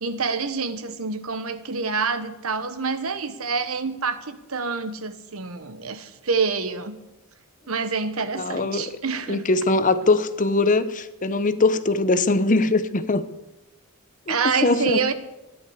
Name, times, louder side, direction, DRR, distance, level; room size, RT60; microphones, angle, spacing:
voice 1, 0.0-7.0 7.7-9.4 14.3-15.1, right 5 dB, 80° right, 11 dB, 1.2 m, -27 dB
voice 2, 8.3-8.9 9.3-13.2 14.3-15.0, left 3 dB, 35° left, 12 dB, 0.8 m, -21 dB
14.0 x 11.0 x 8.1 m, 0.99 s
head